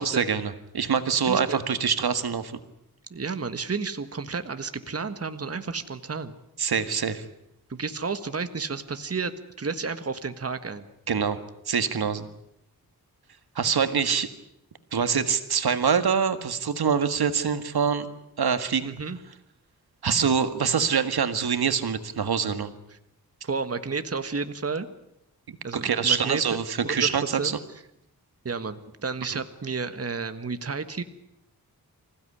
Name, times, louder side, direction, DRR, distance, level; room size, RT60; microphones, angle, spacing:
voice 1, 0.0-2.5 6.6-7.2 11.1-11.4 11.7-12.3 13.6-14.3 14.9-18.1 18.4-18.9 20.0-22.7 25.5-27.6 29.3-29.4, right 6 dB, 80° right, 10 dB, 1.8 m, -25 dB
voice 2, 1.2-1.6 3.1-6.3 7.7-10.9 18.8-19.2 23.4-24.9 25.6-26.4 26.8-27.5 28.4-31.0, right 4 dB, 40° right, 10 dB, 1.5 m, -31 dB
26.5 x 16.5 x 9.9 m, 0.82 s
wide cardioid pair, 80°, 37 cm